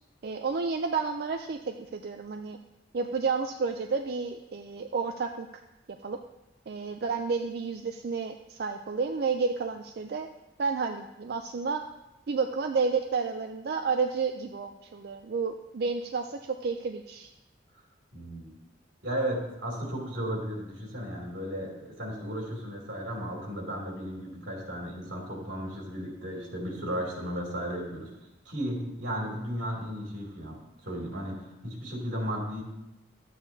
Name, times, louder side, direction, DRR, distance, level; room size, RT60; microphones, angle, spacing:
voice 1, 0.2-2.6 2.9-5.6 6.0-6.2 6.7-10.3 10.6-11.8 12.3-17.3, right 4 dB, 55° right, 5 dB, 0.4 m, -31 dB
voice 2, 18.1-18.6 19.0-28.1 28.4-32.6, equal, 85° right, -1 dB, 2.7 m, -35 dB
11.5 x 8.4 x 2.7 m, 0.94 s
head